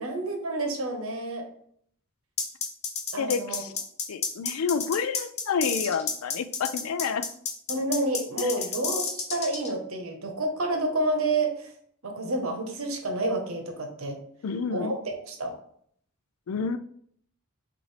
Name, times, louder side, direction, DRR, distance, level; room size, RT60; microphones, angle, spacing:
voice 1, 0.0-1.4 3.1-3.6 7.7-11.7 12.0-14.2 14.7-15.5, right 2 dB, 70° right, 4 dB, 0.9 m, -29 dB
sound 1, 2.4-9.7, left 5 dB, 30° left, 0.6 m, -30 dB
voice 2, 3.2-3.7 4.1-7.3 8.4-8.5 14.4-14.9 16.5-16.8, left 6 dB, 70° left, 12 dB, 0.3 m, -29 dB
6.2 x 2.6 x 3.1 m, 0.65 s
head